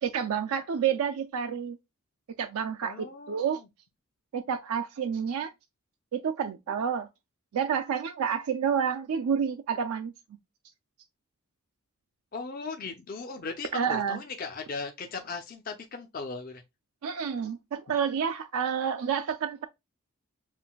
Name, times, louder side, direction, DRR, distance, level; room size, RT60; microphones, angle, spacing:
voice 1, 0.0-1.8 2.4-3.6 4.3-5.5 6.1-7.1 7.5-10.1 13.7-14.2 17.0-19.7, right 7 dB, 85° right, 0.4 m, -29 dB
voice 2, 2.8-3.7 12.3-16.6, left 4 dB, 40° left, 0.5 m, -38 dB
7.3 x 2.5 x 2.2 m
head